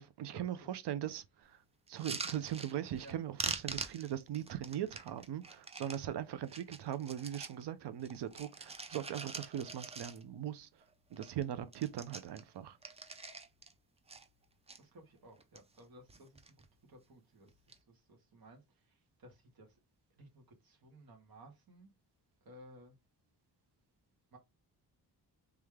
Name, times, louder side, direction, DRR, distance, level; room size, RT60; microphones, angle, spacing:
voice 1, 0.0-1.6 1.9-10.7 11.1-12.8, right 11 dB, 80° right, 0.7 m, -40 dB
sound 1, 1.9-3.1 3.4-6.0 6.4-7.6 8.0-10.5 10.8-10.9 11.1-11.4 11.7-13.7 14.1-14.8 15.3-15.8 16.1-16.7 17.5-17.8, right 4 dB, 15° right, 0.4 m, -44 dB
voice 2, 14.8-17.5 17.9-19.8 20.2-21.9 22.5-23.0 24.3-24.4, right 1 dB, 60° right, 1.8 m, -58 dB
3.4 x 3.3 x 3.5 m
wide cardioid pair, 140°, 40 cm